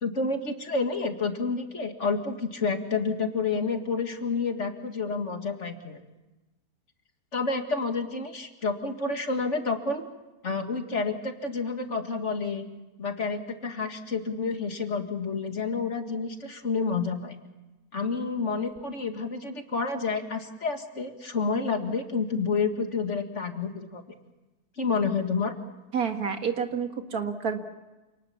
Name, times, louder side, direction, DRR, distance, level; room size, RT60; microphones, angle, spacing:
voice 1, 0.0-6.0 7.3-10.0 10.4-12.7 13.0-17.3 17.9-24.0 24.8-25.5, left 4 dB, 50° left, 5 dB, 2.3 m, -29 dB
voice 2, 25.9-27.6, right 6 dB, 75° right, 5 dB, 2.4 m, -29 dB
28.0 x 19.5 x 7.2 m, 1.1 s
omnidirectional pair, 1.6 m